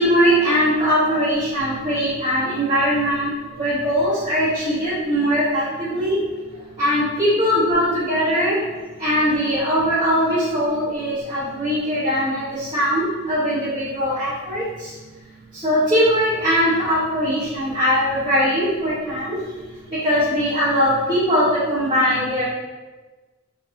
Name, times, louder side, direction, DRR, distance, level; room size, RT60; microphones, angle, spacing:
voice 1, 0.0-6.2 6.8-8.6 9.0-14.9 15.6-19.4 20.0-22.4, equal, 20° right, -11 dB, 0.8 m, -20 dB
2.9 x 2.6 x 3.8 m, 1.3 s
head